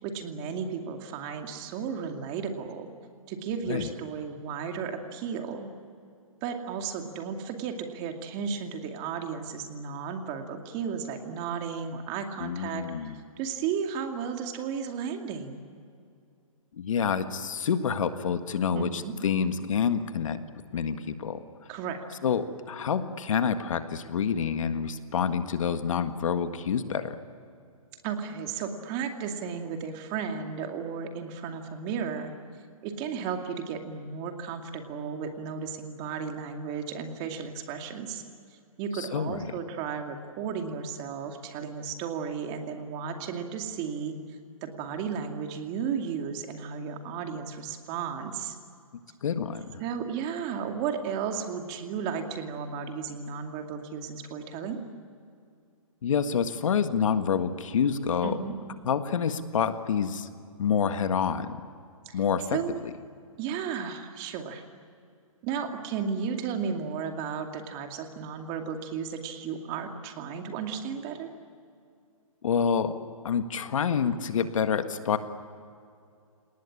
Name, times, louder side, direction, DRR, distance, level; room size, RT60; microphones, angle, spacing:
voice 1, 0.0-2.9 3.3-5.7 6.4-15.6 18.7-19.1 21.7-22.0 28.0-32.3 32.8-38.2 38.8-44.2 44.6-48.6 49.8-54.8 58.2-58.5 62.1-62.2 62.5-62.7 63.4-64.6 65.4-71.3, right 6 dB, 30° right, 4 dB, 2.4 m, -34 dB
voice 2, 12.4-13.2 16.7-20.4 20.7-21.4 22.2-27.2 38.9-39.4 49.2-49.8 56.0-58.4 58.9-60.3 60.6-61.6 62.1-62.6 72.4-72.9 73.2-75.2, left 7 dB, 65° left, 9 dB, 1.7 m, -27 dB
29.5 x 19.0 x 9.9 m, 2.4 s
hypercardioid pair, 145°, 18 cm